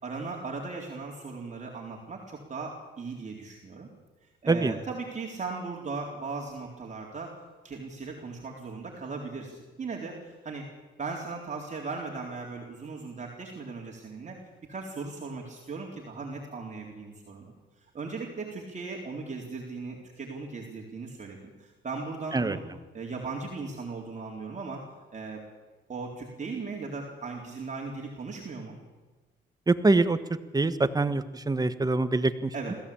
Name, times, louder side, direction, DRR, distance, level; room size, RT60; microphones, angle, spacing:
voice 1, 0.0-3.9 4.4-7.3 7.6-10.7 11.0-14.4 14.7-22.6 22.9-24.8 25.1-25.4 25.9-28.8 32.5-32.8, right 4 dB, 35° right, -1 dB, 4.0 m, -38 dB
voice 2, 29.7-30.2 30.5-32.7, right 3 dB, 20° right, 11 dB, 1.3 m, -24 dB
21.5 x 15.5 x 8.7 m, 1.3 s
cardioid pair, 90°, 20 cm